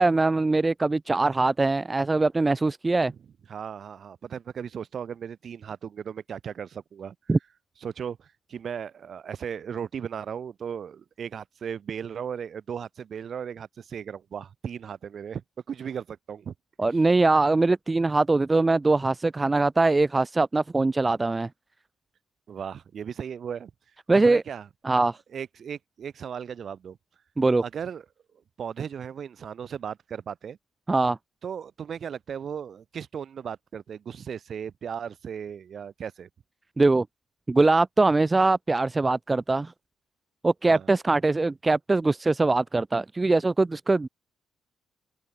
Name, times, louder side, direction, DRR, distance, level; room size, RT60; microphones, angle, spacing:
voice 1, 0.0-3.1 7.3-7.4 16.8-21.5 24.1-24.4 24.8-25.2 27.4-27.6 30.9-31.2 36.8-37.1 37.5-39.7 40.4-44.1, right 3 dB, 20° right, 1.2 m, -22 dB
voice 2, 3.5-7.1 7.8-15.4 15.7-16.5 22.5-23.7 24.1-24.7 25.3-27.0 27.6-28.0 28.6-30.6 31.4-36.3 40.7-40.9, right 7 dB, 55° right, 7.7 m, -36 dB
cardioid pair, 90°, 0 cm